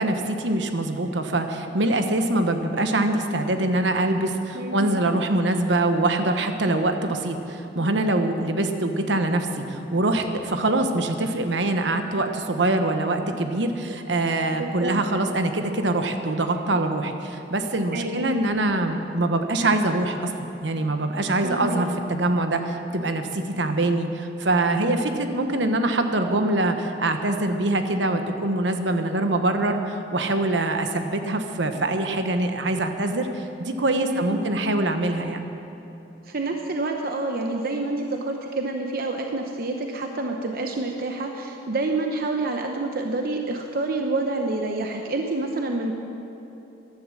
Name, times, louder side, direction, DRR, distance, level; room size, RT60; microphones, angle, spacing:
voice 1, 0.0-20.3 20.6-35.4, right 2 dB, 70° right, 6 dB, 1.1 m, -24 dB
voice 2, 4.5-4.8 14.5-15.0 17.9-18.3 21.4-21.8 34.0-34.4 36.2-45.9, right 2 dB, 55° right, 3 dB, 0.9 m, -28 dB
15.0 x 11.5 x 6.4 m, 3.0 s
head